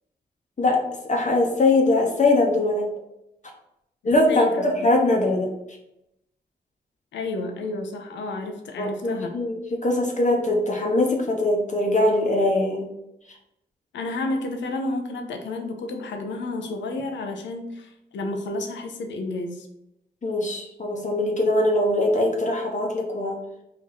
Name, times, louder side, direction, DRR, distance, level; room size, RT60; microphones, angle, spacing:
voice 1, 0.6-2.9 4.0-5.5 8.8-12.9 20.2-23.4, left 2 dB, 40° left, 1 dB, 0.8 m, -22 dB
voice 2, 4.0-4.9 7.1-9.3 13.9-19.7, left 2 dB, 85° left, 4 dB, 0.6 m, -31 dB
3.2 x 2.6 x 3.8 m, 0.86 s
supercardioid pair, 45°, 18 cm